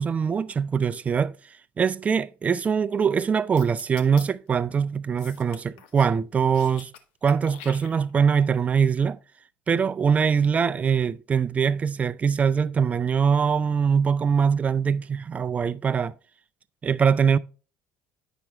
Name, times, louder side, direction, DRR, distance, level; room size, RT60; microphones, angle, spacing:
voice 1, 0.0-1.3 1.8-6.9 7.2-9.2 9.7-16.1 16.8-17.4, right 6 dB, 25° right, 0.3 m, -23 dB
sound 1, 3.6-4.3 5.2-6.2 6.4-7.0 7.3-8.3, left 8 dB, 90° left, 0.8 m, -45 dB
9.0 x 5.9 x 3.3 m
supercardioid pair, 95°, 5 cm